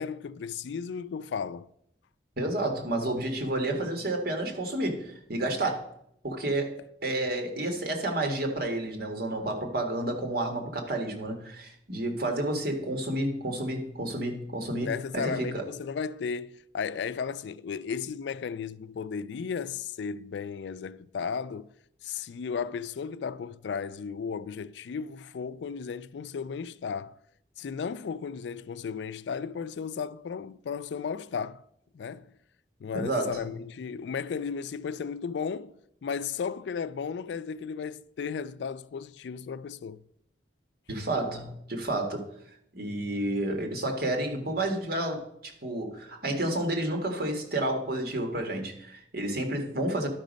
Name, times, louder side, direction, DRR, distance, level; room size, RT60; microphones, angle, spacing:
voice 1, 0.0-1.7 14.8-21.7 22.0-27.1 27.6-31.6 31.9-32.3 32.8-35.7 36.0-40.0, left 6 dB, 75° left, 0.4 m, -34 dB
voice 2, 2.4-5.8 6.2-15.6 32.9-33.5 40.9-42.2 42.7-50.1, right 1 dB, 60° right, 1.6 m, -30 dB
11.5 x 5.2 x 5.1 m
head